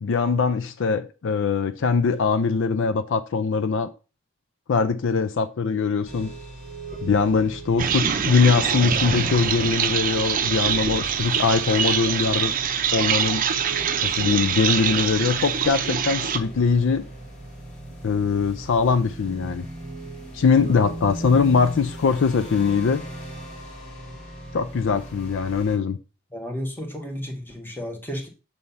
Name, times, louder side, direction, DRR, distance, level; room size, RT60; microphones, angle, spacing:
voice 1, 0.0-3.9 4.7-6.3 7.0-12.5 12.9-13.4 14.0-17.0 18.0-19.6 20.3-23.0 24.5-26.0, left 5 dB, 60° left, 0.4 m, -22 dB
sound 1, 6.0-25.8, right 1 dB, 35° left, 2.1 m, -38 dB
sound 2, 7.8-16.4, right 7 dB, 40° right, 0.6 m, -24 dB
voice 2, 26.3-28.3, equal, 10° left, 1.2 m, -32 dB
6.9 x 3.3 x 5.5 m
head